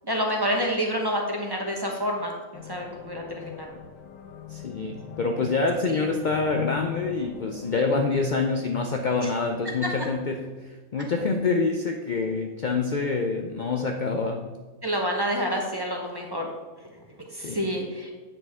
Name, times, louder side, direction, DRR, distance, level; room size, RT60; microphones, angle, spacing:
voice 1, 0.0-3.7 5.9-6.1 14.8-16.5 17.3-18.1, equal, 20° right, 0 dB, 0.9 m, -28 dB
sound 1, 2.5-8.3, left 10 dB, 85° left, 1.2 m, -39 dB
voice 2, 4.5-14.5 17.3-17.7, left 4 dB, 70° left, 4 dB, 0.4 m, -26 dB
8.6 x 6.0 x 3.6 m, 1.3 s
omnidirectional pair, 1.5 m